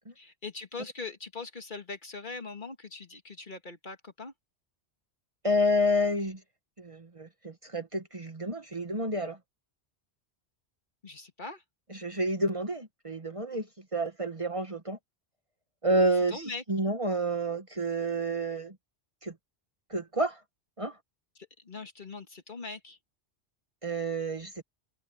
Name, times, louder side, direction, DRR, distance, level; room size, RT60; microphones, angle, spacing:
voice 1, 0.2-4.3 11.0-11.6 16.3-16.6 21.4-23.0, left 3 dB, 45° left, 1.9 m, -41 dB
voice 2, 5.4-6.4 6.8-9.4 11.9-13.7 13.9-15.0 15.8-16.4 16.7-18.7 19.2-19.3 19.9-20.4 20.8-21.0 23.8-24.6, equal, 30° right, 1.4 m, -29 dB
omnidirectional pair, 1.1 m